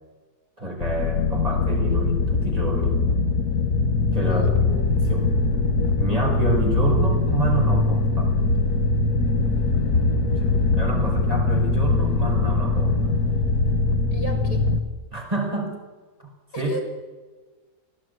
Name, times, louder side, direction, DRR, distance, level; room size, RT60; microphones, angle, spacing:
voice 1, 0.6-3.0 4.1-5.3 6.0-8.3 10.4-13.1 15.1-15.8 16.2-16.7, right 2 dB, 20° right, 1 dB, 5.2 m, -28 dB
sound 1, 0.8-14.8, left 3 dB, 70° left, 2.0 m, -22 dB
voice 2, 4.2-4.9 14.1-14.6 16.5-16.8, right 1 dB, 85° left, 4 dB, 4.5 m, -34 dB
20.0 x 15.5 x 9.2 m, 1.3 s
omnidirectional pair, 1.7 m